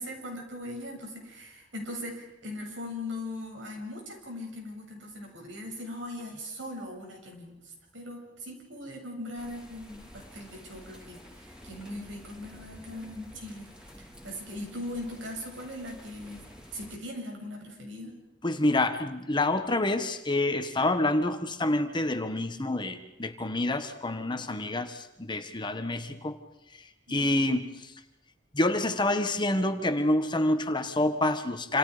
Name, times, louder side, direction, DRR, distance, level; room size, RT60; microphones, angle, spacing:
voice 1, 0.0-13.7 14.2-16.4 16.7-18.1 27.1-27.2, left 1 dB, 70° right, 1 dB, 7.7 m, -40 dB
sound 1, 9.4-17.0, equal, 5° right, 4.9 m, -50 dB
voice 2, 18.4-26.4 26.7-27.9 28.5-31.8, left 2 dB, 25° left, 7 dB, 1.5 m, -27 dB
27.5 x 27.5 x 5.1 m, 0.90 s
head